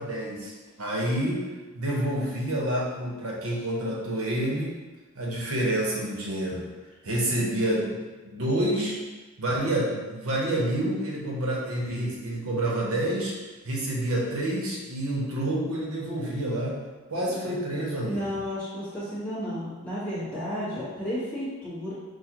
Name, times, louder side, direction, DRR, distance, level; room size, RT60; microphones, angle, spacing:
voice 1, 0.0-1.4 1.7-4.8 5.1-6.7 7.0-7.9 8.2-8.9 9.4-13.3 13.6-16.8 17.1-18.4, right 1 dB, 75° right, -3 dB, 1.0 m, -28 dB
voice 2, 18.0-21.9, equal, 5° left, -13 dB, 1.4 m, -32 dB
6.0 x 2.4 x 3.0 m, 1.3 s
head